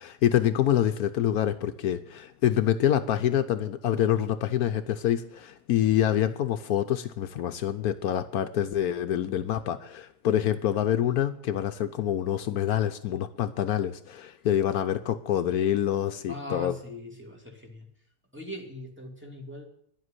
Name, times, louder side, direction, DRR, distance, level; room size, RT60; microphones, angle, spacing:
voice 1, 0.0-16.7, left 11 dB, 75° left, 10 dB, 1.2 m, -26 dB
voice 2, 16.3-17.9 18.3-19.6, left 2 dB, 5° right, 0 dB, 2.6 m, -40 dB
11.0 x 7.8 x 9.8 m, 0.66 s
omnidirectional pair, 1.6 m